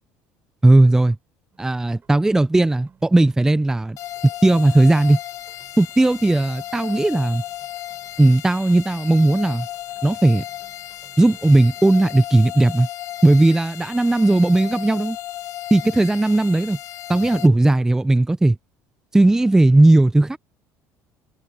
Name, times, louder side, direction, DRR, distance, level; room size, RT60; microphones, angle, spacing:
voice 1, 0.6-1.1 1.6-4.0 4.4-5.2 5.8-7.4 8.2-9.7 10.0-10.4 11.2-12.9 13.2-15.2 15.7-16.8 17.1-18.6 19.1-20.4, right 2 dB, 10° right, 0.5 m, -16 dB
sound 1, 1.5-12.0, right 6 dB, 35° right, 6.2 m, -56 dB
sound 2, 4.0-17.5, left 14 dB, 60° left, 2.5 m, -35 dB
supercardioid pair, 105°, 6 cm